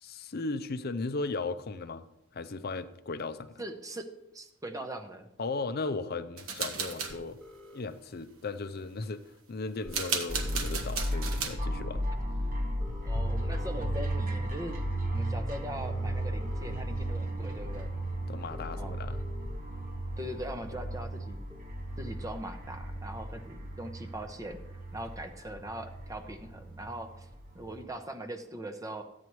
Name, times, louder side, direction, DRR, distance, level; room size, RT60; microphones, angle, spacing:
voice 1, 0.0-2.1 2.3-3.6 5.4-7.4 7.7-12.1 18.3-19.2, left 3 dB, 45° left, 0.5 m, -36 dB
voice 2, 3.6-5.3 13.1-14.8 15.1-17.9 18.8-18.9 20.2-21.4 22.0-24.6 24.9-27.3 27.5-29.0, right 1 dB, 15° right, 0.7 m, -41 dB
sound 1, 6.4-7.1 9.9-11.5, right 5 dB, 80° right, 1.3 m, -34 dB
sound 2, 6.8-7.8 9.8-10.8 12.8-13.8 15.8-16.8 17.3-17.4 18.5-19.5 21.5-21.6, left 1 dB, 5° left, 1.3 m, -50 dB
sound 3, 10.3-27.8, equal, 40° right, 1.1 m, -35 dB
14.5 x 9.4 x 3.1 m
head